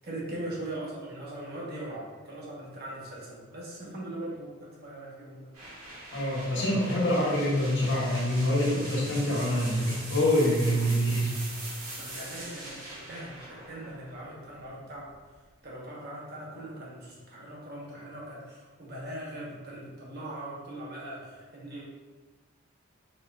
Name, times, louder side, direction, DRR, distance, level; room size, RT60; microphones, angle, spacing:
voice 1, 0.0-5.5 12.0-15.1 15.6-21.8, right 1 dB, 45° right, -4 dB, 1.0 m, -40 dB
sound 1, 5.5-15.3, right 1 dB, 80° right, 1.3 m, -42 dB
voice 2, 6.1-11.3, equal, 55° left, -4 dB, 1.1 m, -25 dB
4.2 x 3.8 x 2.3 m, 1.3 s
head